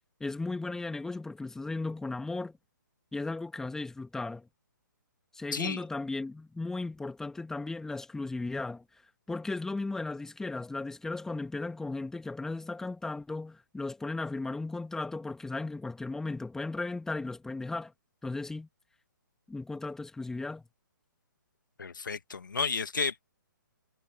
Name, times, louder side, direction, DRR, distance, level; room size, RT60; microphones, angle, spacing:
voice 1, 0.2-2.6 3.1-4.5 5.3-8.8 9.3-17.9 18.2-18.7 19.5-20.6, left 3 dB, 5° left, 2.5 m, -36 dB
voice 2, 5.5-5.8 21.8-23.2, left 5 dB, 70° left, 2.2 m, -32 dB
figure-of-eight pair, 130°, 11 cm